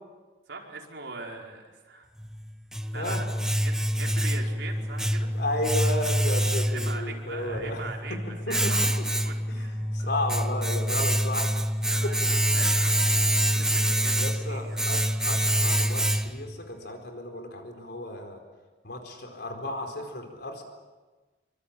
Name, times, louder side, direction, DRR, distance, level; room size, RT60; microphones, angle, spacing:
voice 1, 0.5-2.1 2.9-3.3 3.6-5.3 6.4-8.2 8.5-10.1 11.9-14.8, right 3 dB, 70° right, 0 dB, 5.2 m, -41 dB
Domestic sounds home sounds, 2.2-16.6, equal, 5° right, 1.0 m, -26 dB
voice 2, 5.3-7.8 8.5-8.9 9.5-11.7 14.2-18.4 18.8-20.6, left 1 dB, 60° left, 4 dB, 4.5 m, -33 dB
27.0 x 25.0 x 8.8 m, 1.3 s
head